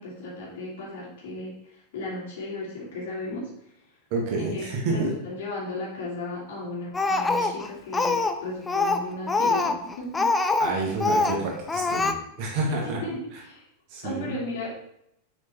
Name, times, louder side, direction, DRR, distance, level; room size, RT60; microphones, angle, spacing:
voice 1, 0.0-4.0 4.4-10.3 12.7-13.6 14.0-14.7, left 2 dB, 55° left, -4 dB, 2.4 m, -35 dB
voice 2, 4.1-5.1 7.4-7.5 10.6-13.0 13.9-14.3, right 3 dB, 45° right, 0 dB, 1.6 m, -29 dB
Speech, 6.9-8.4 8.7-10.7 11.0-11.4 11.7-12.1, left 3 dB, 15° left, 0.4 m, -24 dB
6.9 x 4.5 x 3.2 m, 0.76 s
figure-of-eight pair, 90°, 0 cm